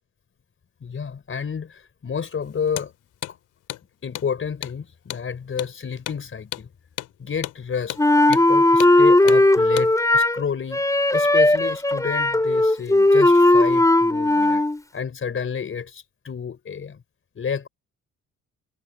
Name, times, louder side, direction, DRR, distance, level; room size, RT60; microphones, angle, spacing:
voice 1, 0.8-2.9 3.3-3.4 4.0-6.7 7.2-8.0 8.3-10.8 11.1-14.6 14.9-17.0 17.4-17.7, left 6 dB, 45° left, 4.4 m, -30 dB
Hammer, 2.7-2.9 3.2-3.4 3.7-3.8 4.1-4.3 4.6-4.8 5.1-5.2 5.6-5.7 6.1-6.2 6.5-6.7 7.0-7.1 7.4-7.6 7.9-8.0 8.3-8.5 8.8-8.9 9.3-9.4 9.8-9.9, left 14 dB, 90° left, 3.1 m, -32 dB
Wind instrument woodwind instrument, 8.0-10.4 10.7-14.8, left 2 dB, 10° left, 3.9 m, -17 dB
cardioid pair, 90°, 30 cm